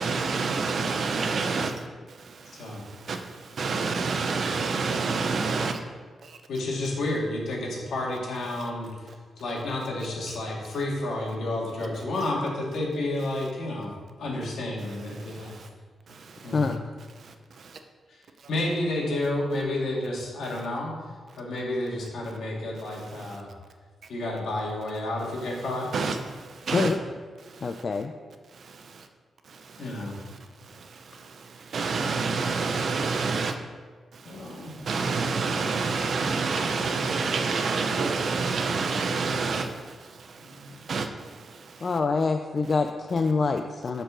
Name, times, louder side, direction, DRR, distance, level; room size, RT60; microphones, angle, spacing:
voice 1, 0.0-5.8 6.2-6.4 15.2-15.7 16.1-16.5 17.2-17.8 23.2-23.4 25.9-26.9 27.5-27.7 28.5-29.1 29.5-29.8 30.7-33.5 34.1-41.9, right 4 dB, 50° right, 6 dB, 0.6 m, -29 dB
voice 2, 6.5-8.9 9.4-13.9 14.2-15.6 16.4-16.8 18.1-18.2 18.5-20.9 21.3-23.5 24.1-25.9 29.8-30.2 34.2-34.9 40.4-41.0, left 1 dB, 70° left, -2 dB, 2.0 m, -30 dB
voice 3, 27.6-28.1 41.8-44.0, left 4 dB, 35° left, 6 dB, 0.3 m, -25 dB
7.8 x 4.5 x 6.2 m, 1.5 s
wide cardioid pair, 170°, 0 cm